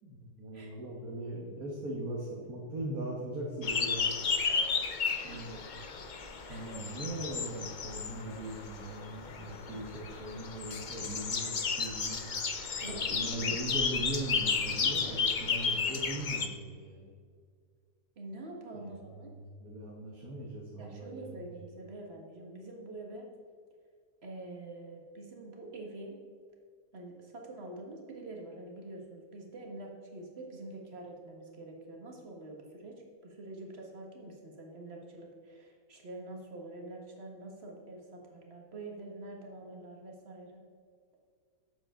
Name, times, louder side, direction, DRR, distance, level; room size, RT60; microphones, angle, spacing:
voice 1, 0.0-4.2 5.2-5.6 6.5-12.3 12.9-17.1 18.7-19.2 19.4-21.5, right 1 dB, 60° right, -2 dB, 1.8 m, -40 dB
sound 1, 3.6-16.5, left 5 dB, 45° left, 0.6 m, -33 dB
voice 2, 4.4-5.4 6.5-6.7 12.8-13.5 18.2-19.3 20.8-23.3 24.2-26.2 26.9-40.6, right 2 dB, 40° right, 0 dB, 1.9 m, -46 dB
12.0 x 8.1 x 3.8 m, 2.1 s
omnidirectional pair, 1.8 m